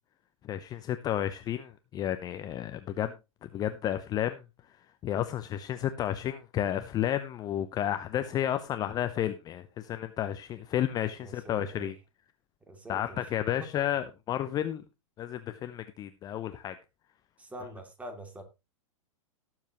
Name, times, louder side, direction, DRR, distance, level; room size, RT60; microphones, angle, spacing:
voice 1, 0.5-3.1 3.4-4.4 5.0-11.9 12.9-14.8 15.2-16.8, left 11 dB, 20° left, 0.7 m, -32 dB
voice 2, 11.2-11.9 12.7-13.2 13.6-13.7 17.4-18.4, right 1 dB, 10° right, 2.6 m, -44 dB
18.5 x 7.4 x 3.0 m
figure-of-eight pair, 105°, 17 cm